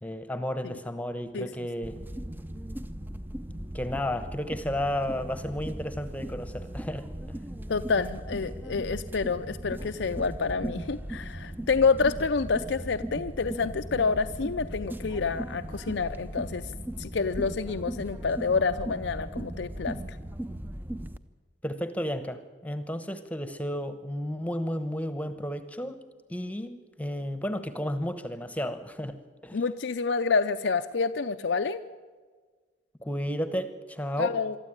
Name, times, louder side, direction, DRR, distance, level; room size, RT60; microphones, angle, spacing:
voice 1, 0.0-2.0 3.7-7.1 21.6-26.0 26.3-29.2 29.4-29.6 33.0-34.3, equal, 10° left, 10 dB, 1.0 m, -32 dB
sound 1, 1.8-21.2, right 1 dB, 10° right, 0.6 m, -38 dB
voice 2, 7.7-16.6 17.0-20.2 29.5-31.8 34.2-34.6, left 4 dB, 75° left, 8 dB, 0.6 m, -28 dB
23.5 x 13.5 x 8.9 m, 1.5 s
head